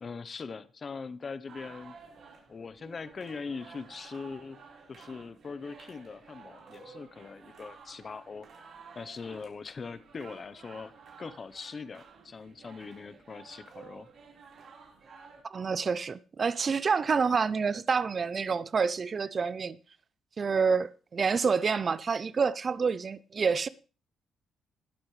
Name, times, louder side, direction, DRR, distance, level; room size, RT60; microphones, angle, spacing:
voice 1, 0.0-2.0 2.5-8.5 8.9-14.1, left 5 dB, 40° left, 0.8 m, -41 dB
sound 1, 1.5-15.4, right 5 dB, 60° right, 4.2 m, -52 dB
voice 2, 15.5-19.8 20.4-23.7, right 5 dB, 40° right, 0.5 m, -28 dB
20.0 x 8.0 x 3.2 m
cardioid pair, 90°, 0 cm